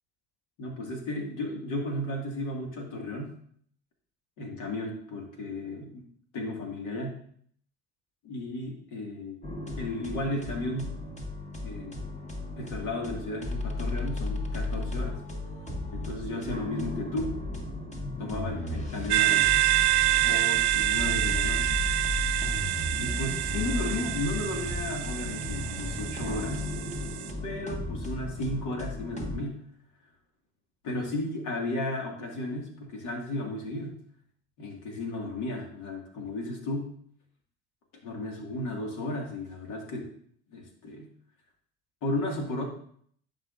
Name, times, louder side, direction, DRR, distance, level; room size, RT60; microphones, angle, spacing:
voice 1, 0.6-3.3 4.4-6.1 6.3-7.2 8.3-9.4 9.8-10.9 11.6-12.0 12.6-15.2 15.9-17.4 18.2-19.7 20.2-21.8 23.0-27.1 27.4-29.6 30.8-34.0 34.6-36.9 38.0-40.1 40.5-41.1 42.0-42.6, left 1 dB, 70° left, 1 dB, 2.0 m, -34 dB
sound 1, 9.4-29.4, left 2 dB, 20° left, 1.6 m, -34 dB
sound 2, 19.1-27.3, right 17 dB, 65° right, 0.5 m, -27 dB
11.5 x 5.1 x 2.5 m, 0.62 s
hypercardioid pair, 70°, 32 cm